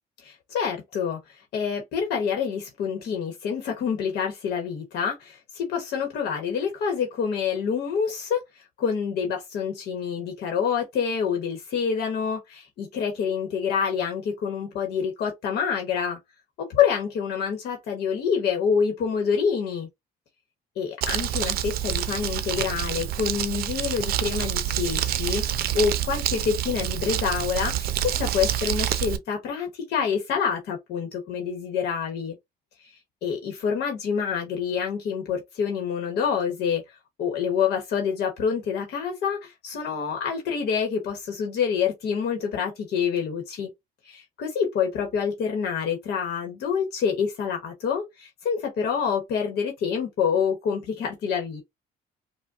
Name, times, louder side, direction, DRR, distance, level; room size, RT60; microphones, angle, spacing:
voice 1, 0.2-16.2 16.6-19.9 20.8-32.4 32.8-32.9 33.2-36.8 37.2-43.7 44.0-51.6, left 7 dB, 70° left, 1.1 m, -27 dB
Crumpling crinkling, 21.0-29.2, right 11 dB, 65° right, 0.5 m, -27 dB
4.9 x 2.2 x 2.4 m
cardioid pair, 110°, 17 cm